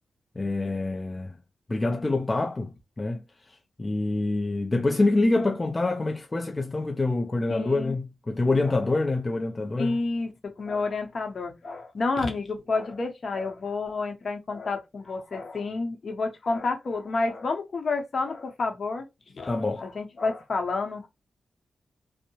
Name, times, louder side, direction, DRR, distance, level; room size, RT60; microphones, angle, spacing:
voice 1, 0.4-1.4 1.7-10.0 19.5-19.9, left 2 dB, 25° left, 0.4 m, -26 dB
voice 2, 7.5-7.9 8.6-9.0 9.8-19.1 19.3-21.1, left 3 dB, 55° left, 0.7 m, -30 dB
2.7 x 2.0 x 2.8 m
cardioid pair, 85°, 0 cm